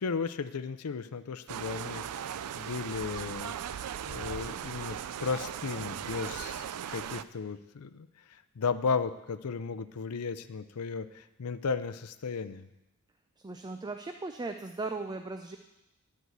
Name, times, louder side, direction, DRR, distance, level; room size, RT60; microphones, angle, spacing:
voice 1, 0.0-3.5 4.1-8.1 8.6-12.7, left 5 dB, 75° left, 12 dB, 0.5 m, -35 dB
sound 1, 1.5-7.2, right 9 dB, 85° right, 0.4 m, -38 dB
voice 2, 13.4-15.6, right 3 dB, 20° right, 6 dB, 0.4 m, -37 dB
11.5 x 4.7 x 8.1 m, 0.98 s
head